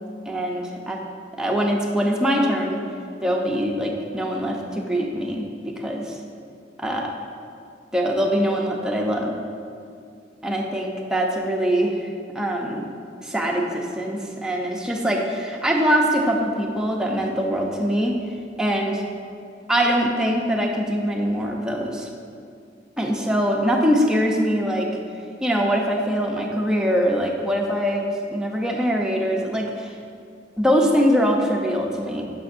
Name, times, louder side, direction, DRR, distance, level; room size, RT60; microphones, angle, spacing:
voice 1, 0.3-1.0 1.4-2.8 3.2-6.2 6.8-7.1 7.9-9.4 10.4-12.8 13.2-18.1 18.6-19.0 19.7-22.1 23.0-24.9 25.4-29.9 30.6-32.2, equal, 5° right, -1 dB, 0.6 m, -23 dB
8.7 x 6.1 x 2.5 m, 2.4 s
head